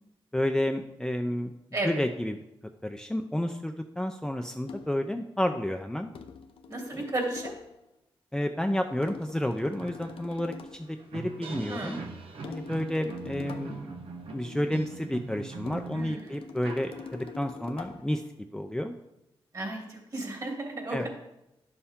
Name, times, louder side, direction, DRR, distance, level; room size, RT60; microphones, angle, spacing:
voice 1, 0.3-1.5 1.8-2.4 2.8-6.1 6.9-7.0 8.3-12.0 12.5-13.9 14.3-18.2 18.5-18.9 20.9-21.1, left 1 dB, 5° left, 4 dB, 0.5 m, -30 dB
voice 2, 1.7-2.0 6.7-7.6 11.7-12.1 15.9-16.4 19.5-21.1, right 2 dB, 40° right, 0 dB, 2.8 m, -34 dB
sound 1, 4.6-5.1 6.1-7.8 9.0-10.9 12.4-13.9 15.7-18.2, left 5 dB, 80° left, 0.7 m, -44 dB
sound 2, 9.0-9.1 9.4-17.5, right 4 dB, 90° right, 1.1 m, -42 dB
11.0 x 7.0 x 3.7 m, 0.87 s
cardioid pair, 85°, 9 cm